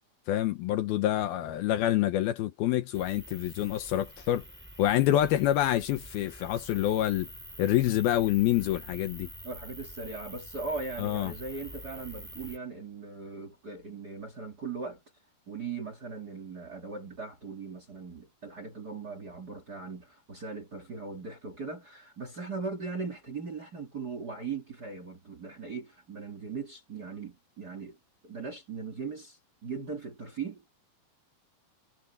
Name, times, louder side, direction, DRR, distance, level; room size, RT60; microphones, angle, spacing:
voice 1, 0.3-4.4 4.8-7.3 7.6-9.3 11.0-11.3, left 13 dB, 75° left, 2.6 m, -27 dB
sound 1, 2.9-12.6, equal, ahead, 6.5 m, -46 dB
voice 2, 9.4-15.0 15.5-28.0 28.2-30.6, right 4 dB, 30° right, 2.0 m, -39 dB
omnidirectional pair, 4.8 m